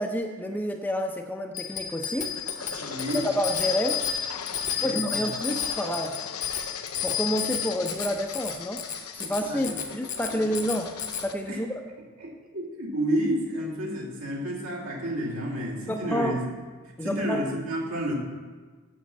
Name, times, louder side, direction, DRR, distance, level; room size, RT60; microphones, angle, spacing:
voice 1, 0.0-2.3 3.2-4.0 4.8-6.2 7.0-8.8 9.1-10.9 11.2-11.7 15.9-16.4 17.0-17.5, equal, 10° left, 3 dB, 0.5 m, -29 dB
Bicycle bell, 1.5-11.3, left 8 dB, 35° left, 0.8 m, -32 dB
sound 1, 1.7-11.3, left 6 dB, 90° left, 0.7 m, -40 dB
voice 2, 2.8-3.2 4.6-5.2 9.2-9.7 10.3-10.4 11.5-11.6 12.2-16.4 17.0-18.1, equal, 80° right, -3 dB, 2.4 m, -31 dB
7.4 x 7.4 x 7.0 m, 1.4 s
head